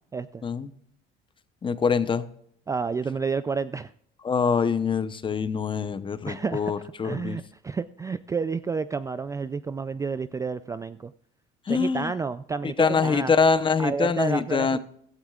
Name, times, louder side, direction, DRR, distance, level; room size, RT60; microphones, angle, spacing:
voice 1, 0.1-0.4 2.7-3.9 6.3-6.7 7.0-11.1 11.7-13.3 13.8-14.8, right 5 dB, 15° right, 13 dB, 0.3 m, -30 dB
voice 2, 1.6-2.2 4.2-7.4 11.7-12.1 12.8-14.8, left 5 dB, 25° left, 13 dB, 0.8 m, -24 dB
16.0 x 13.0 x 2.4 m, 0.66 s
cardioid pair, 120°, 20 cm